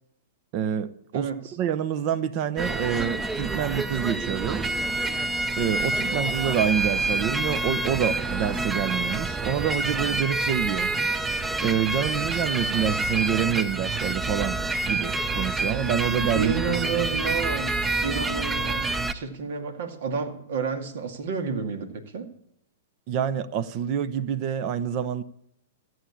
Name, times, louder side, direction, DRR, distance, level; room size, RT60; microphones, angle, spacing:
voice 1, 0.5-4.7 5.6-10.9 11.6-16.5 23.1-25.2, right 9 dB, 45° right, 0.8 m, -27 dB
voice 2, 1.1-1.6 16.3-22.3, right 5 dB, 65° right, 2.2 m, -30 dB
sound 1, 2.6-19.1, right 2 dB, 15° right, 0.7 m, -27 dB
14.0 x 7.9 x 8.4 m
hypercardioid pair, 125°, 0 cm